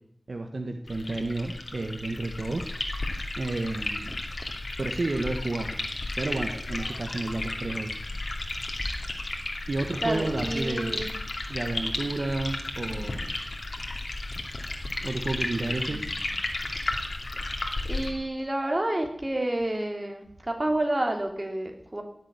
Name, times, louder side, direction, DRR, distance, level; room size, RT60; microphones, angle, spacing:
voice 1, 0.3-2.6 3.4-4.2 4.8-5.7 6.2-7.9 9.7-11.0 11.5-13.3 15.0-16.0, right 2 dB, 70° right, 5 dB, 1.5 m, -31 dB
sound 1, 0.9-18.1, left 2 dB, 70° left, 2.5 m, -33 dB
voice 2, 10.0-11.1 15.9-16.3 17.8-22.0, right 1 dB, 35° right, 3 dB, 3.3 m, -29 dB
17.5 x 7.7 x 9.7 m, 0.71 s
wide cardioid pair, 55°, 0 cm